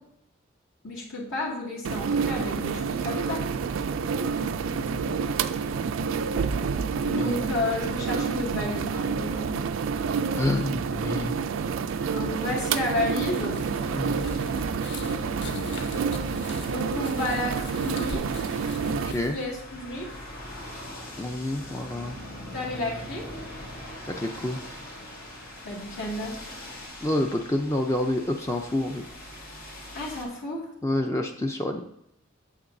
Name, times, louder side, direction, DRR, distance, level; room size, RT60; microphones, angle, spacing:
voice 1, 0.8-3.4 7.1-9.5 12.0-13.6 16.7-18.2 19.1-20.1 22.5-23.3 25.6-26.3 29.9-30.7, left 2 dB, 70° left, -8 dB, 2.2 m, -32 dB
sound 1, 1.8-19.1, right 5 dB, 70° right, 0.4 m, -28 dB
voice 2, 4.7-5.1 7.2-7.4 10.3-11.4 13.9-14.3 18.9-19.4 21.2-22.2 24.1-24.6 27.0-29.0 30.8-31.8, left 1 dB, 15° left, 3 dB, 0.4 m, -28 dB
Cars on street, 11.7-14.5 15.8-30.2, left 1 dB, 90° left, 2.7 m, -43 dB
sound 2, 13.5-19.4, left 3 dB, 55° left, 0.6 m, -40 dB
8.7 x 7.6 x 2.6 m, 0.76 s
head